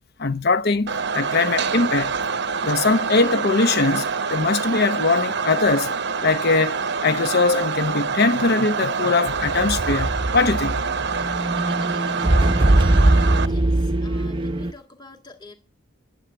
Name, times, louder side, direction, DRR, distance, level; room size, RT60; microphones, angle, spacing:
voice 1, 0.2-2.2 2.6-5.9 6.2-10.8 13.2-13.3, left 3 dB, 55° left, 0.8 m, -21 dB
sound 1, 0.9-13.5, right 5 dB, 60° right, 0.7 m, -26 dB
sound 2, 9.3-14.7, right 1 dB, 25° right, 0.7 m, -21 dB
voice 2, 13.4-15.5, left 3 dB, 25° left, 2.2 m, -46 dB
11.0 x 11.0 x 8.0 m
head